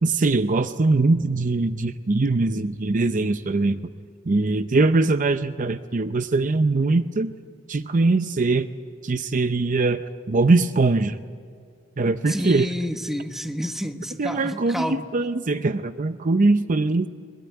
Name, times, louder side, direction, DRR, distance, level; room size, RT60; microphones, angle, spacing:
voice 1, 0.0-3.8 4.3-7.3 7.7-8.7 9.0-10.0 10.3-11.2 12.0-12.7 14.2-14.9 15.1-17.1, right 3 dB, 40° right, 11 dB, 0.6 m, -21 dB
voice 2, 12.3-15.1, equal, ahead, 7 dB, 1.1 m, -29 dB
21.5 x 21.5 x 9.3 m, 2.3 s
head